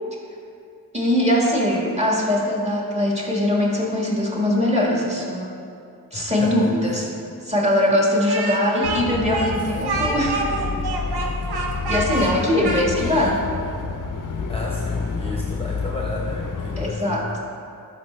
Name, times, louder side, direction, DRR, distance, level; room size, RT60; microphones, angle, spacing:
voice 1, 0.9-5.5 6.1-7.1 7.5-10.5 11.9-13.4 16.8-17.2, left 1 dB, 15° right, -3 dB, 1.6 m, -21 dB
voice 2, 6.1-7.0 14.5-17.3, left 2 dB, 15° left, -3 dB, 0.8 m, -31 dB
Speech, 8.3-13.4, right 3 dB, 90° right, 0.8 m, -27 dB
sound 1, 8.8-16.9, left 4 dB, 55° left, 0.6 m, -29 dB
11.5 x 4.9 x 3.2 m, 2.5 s
wide cardioid pair, 60°, 37 cm